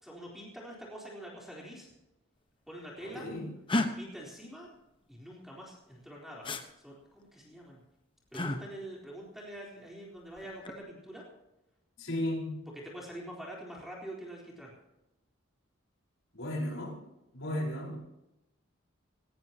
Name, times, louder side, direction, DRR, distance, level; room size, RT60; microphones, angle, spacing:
voice 1, 0.0-1.9 2.7-3.3 4.0-4.7 5.1-7.8 8.3-11.3 12.7-14.7, right 1 dB, ahead, -3 dB, 3.9 m, -45 dB
voice 2, 3.0-3.5 12.0-12.7 16.3-17.0 17.3-18.0, left 1 dB, 75° left, -1 dB, 4.9 m, -35 dB
sound 1, 3.7-3.9 6.4-6.6 8.3-8.6 10.4-10.8, left 2 dB, 25° left, 1.2 m, -30 dB
18.5 x 18.5 x 3.0 m, 0.93 s
head